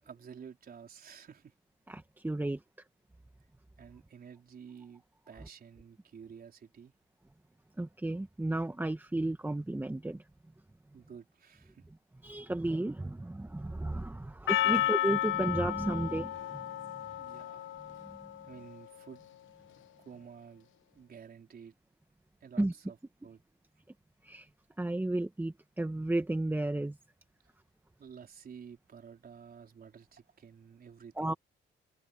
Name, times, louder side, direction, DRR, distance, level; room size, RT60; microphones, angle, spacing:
voice 1, 0.0-1.6 2.3-2.5 3.8-6.9 10.9-11.8 14.6-14.9 17.2-17.7 18.4-19.2 20.0-20.7 20.9-21.7 22.4-23.0 23.2-23.4 28.0-31.4, right 7 dB, 50° right, 4.6 m, -51 dB
voice 2, 1.9-2.6 7.8-10.2 12.2-17.1 18.0-18.3 22.6-22.7 24.2-24.5 24.8-27.0 31.2-31.3, right 2 dB, 10° right, 1.4 m, -33 dB
Percussion, 14.5-18.8, left 14 dB, 80° left, 1.1 m, -33 dB
cardioid pair, 90°, 20 cm